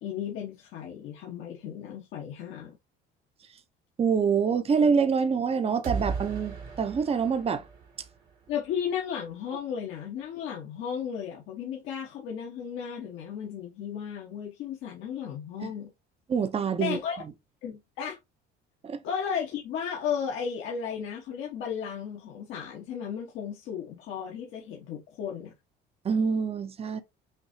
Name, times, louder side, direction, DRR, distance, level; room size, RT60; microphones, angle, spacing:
voice 1, 0.0-2.7 8.5-15.9 16.8-17.2 17.6-18.2 19.0-25.5, left 8 dB, 75° left, 1.3 m, -34 dB
voice 2, 4.0-7.7 15.6-15.7 16.3-17.0 18.8-19.0 26.0-27.0, right 6 dB, 30° right, 0.7 m, -26 dB
sound 1, 5.8-8.7, right 5 dB, 80° right, 2.3 m, -36 dB
5.8 x 2.7 x 2.8 m
supercardioid pair, 95°, 21 cm